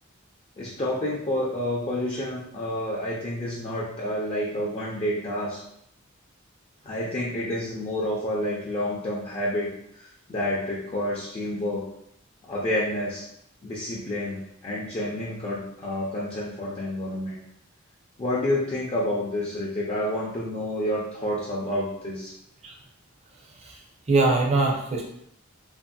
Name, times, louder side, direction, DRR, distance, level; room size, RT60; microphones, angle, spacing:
voice 1, 0.6-5.6 6.8-9.7 10.0-11.9 12.4-13.2 13.6-17.4 18.2-22.3, left 1 dB, 30° left, -6 dB, 0.4 m, -29 dB
voice 2, 24.1-25.1, right 3 dB, 30° right, -1 dB, 0.5 m, -22 dB
2.8 x 2.6 x 2.3 m, 0.74 s
head